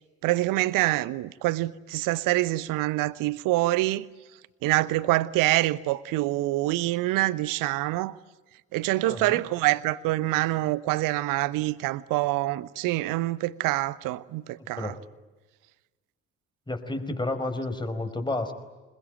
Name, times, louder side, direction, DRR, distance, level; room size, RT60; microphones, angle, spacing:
voice 1, 0.2-4.1 4.6-8.2 8.7-14.9, right 18 dB, 55° right, 0.9 m, -26 dB
voice 2, 9.0-9.4 14.6-15.0 16.7-18.5, left 2 dB, 10° left, 4.7 m, -31 dB
28.5 x 21.5 x 9.1 m
figure-of-eight pair, 45°, 39 cm